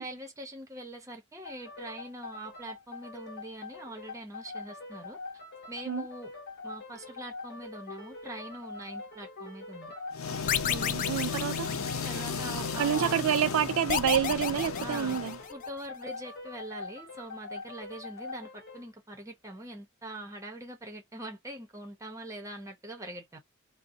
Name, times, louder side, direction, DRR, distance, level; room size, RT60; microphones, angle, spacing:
voice 1, 0.0-5.2 5.7-6.3 6.6-9.9 12.0-13.2 14.8-15.2 15.5-23.4, right 1 dB, 15° right, 0.8 m, -43 dB
sound 1, 1.4-18.9, left 3 dB, 55° left, 1.0 m, -44 dB
sound 2, 10.1-15.5, left 5 dB, 85° left, 0.6 m, -35 dB
sound 3, 10.5-12.4 13.9-15.7, left 9 dB, 40° left, 0.3 m, -32 dB
voice 2, 10.7-11.7 12.8-15.4, right 9 dB, 75° right, 0.3 m, -28 dB
2.7 x 2.1 x 3.6 m
head